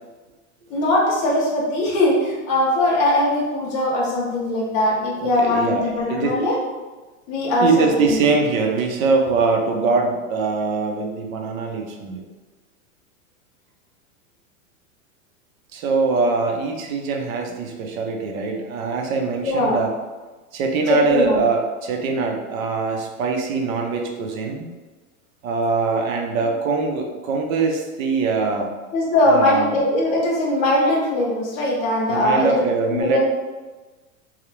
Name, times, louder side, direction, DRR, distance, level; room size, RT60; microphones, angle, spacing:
voice 1, 0.7-6.6 7.3-8.3 19.4-19.8 20.9-21.4 28.9-32.6 32.9-33.2, left 1 dB, 20° left, -5 dB, 0.3 m, -20 dB
voice 2, 5.2-6.4 7.6-12.2 15.7-19.9 20.5-24.7 25.4-28.7 29.3-29.8 32.1-33.2, right 4 dB, 80° right, 2 dB, 0.6 m, -22 dB
2.4 x 2.0 x 2.9 m, 1.2 s
supercardioid pair, 150°, 41 cm